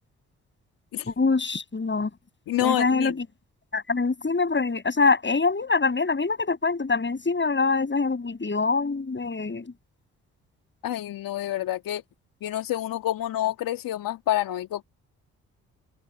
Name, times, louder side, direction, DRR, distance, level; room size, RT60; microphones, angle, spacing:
voice 1, 1.1-2.1 2.6-3.1 3.7-9.7, left 4 dB, 30° left, 6.9 m, -24 dB
voice 2, 2.5-3.1 10.8-12.0 12.4-14.8, left 12 dB, 65° left, 2.0 m, -28 dB
open air
hypercardioid pair, 45°, 36 cm